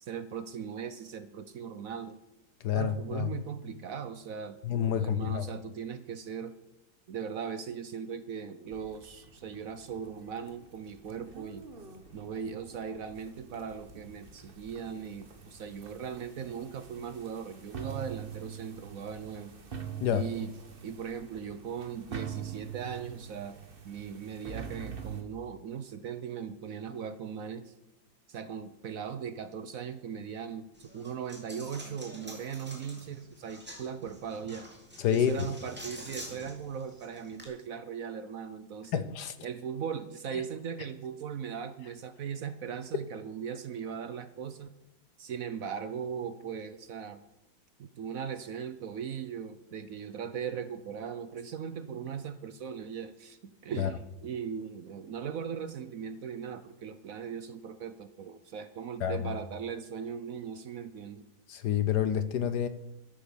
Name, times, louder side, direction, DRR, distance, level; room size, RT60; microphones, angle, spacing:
voice 1, 0.0-2.2 2.7-6.5 7.1-11.7 12.1-19.5 20.1-20.5 20.8-27.7 28.3-34.7 35.1-39.0 39.4-44.7 45.2-47.2 47.8-61.2, right 7 dB, 60° right, 12 dB, 0.9 m, -39 dB
voice 2, 2.6-3.3 4.6-5.5 20.0-20.2 35.0-35.5 38.9-39.3 53.8-53.9 59.0-59.3 61.5-62.7, left 9 dB, 65° left, 12 dB, 1.2 m, -28 dB
sound 1, 8.7-25.2, right 7 dB, 35° right, 1.2 m, -45 dB
Coin (dropping), 30.7-37.4, equal, 5° right, 2.7 m, -47 dB
13.0 x 8.9 x 7.0 m, 0.88 s
omnidirectional pair, 2.1 m